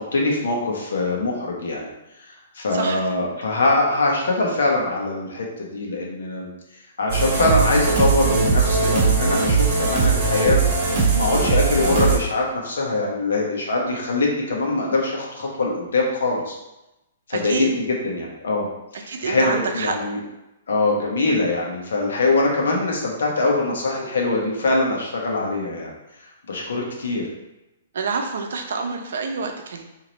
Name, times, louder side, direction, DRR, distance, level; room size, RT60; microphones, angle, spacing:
voice 1, 0.1-1.9 2.3-6.5 7.0-10.6 11.1-16.5 17.3-18.7 18.9-20.2 20.7-25.9 26.5-27.3, left 2 dB, 90° left, -1 dB, 1.0 m, -23 dB
voice 2, 2.7-3.0 17.3-17.7 19.1-20.0 27.9-29.8, right 4 dB, 70° right, 4 dB, 0.6 m, -27 dB
sound 1, 7.1-12.2, right 4 dB, 30° right, 1.0 m, -19 dB
3.2 x 2.8 x 4.0 m, 0.94 s
hypercardioid pair, 170°, 0 cm